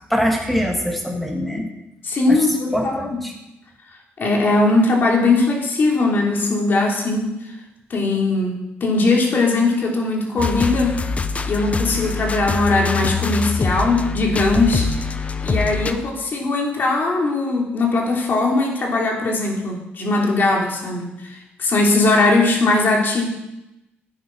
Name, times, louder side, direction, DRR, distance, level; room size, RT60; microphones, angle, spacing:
voice 1, 0.1-1.7 2.3-2.4 2.7-3.3 15.9-16.0, equal, 5° left, 1 dB, 2.2 m, -23 dB
voice 2, 2.0-3.0 4.2-7.3 7.9-11.0 11.5-14.9 15.4-23.3, left 2 dB, 50° left, -1 dB, 3.3 m, -19 dB
sound 1, 10.4-15.9, left 4 dB, 35° left, 0.8 m, -24 dB
11.0 x 9.3 x 4.7 m, 0.90 s
cardioid pair, 90°, 4 cm